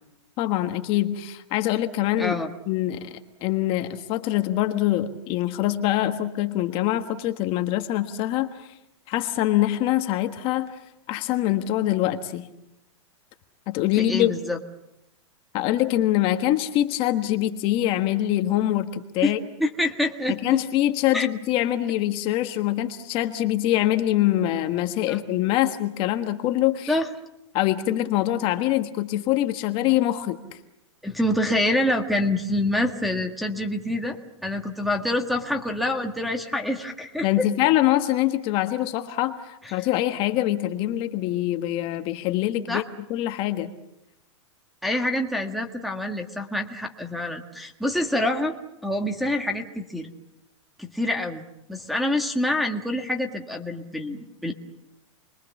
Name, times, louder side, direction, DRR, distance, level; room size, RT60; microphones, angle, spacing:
voice 1, 0.4-2.4 2.7-3.1 3.4-8.7 9.1-10.8 11.1-12.5 13.7-14.3 15.5-19.4 20.3-26.9 27.5-30.4 37.2-42.8 43.1-43.7, left 14 dB, 35° left, 7 dB, 1.4 m, -24 dB
voice 2, 2.2-2.5 13.9-14.6 19.2-19.3 19.6-20.6 21.1-21.3 25.1-25.2 26.9-27.1 31.0-37.5 39.7-39.8 42.7-42.8 44.8-48.5 48.8-50.1 50.8-51.4 51.7-54.5, left 1 dB, ahead, 0 dB, 1.7 m, -26 dB
29.5 x 22.5 x 7.2 m, 0.88 s
supercardioid pair, 150°, 16 cm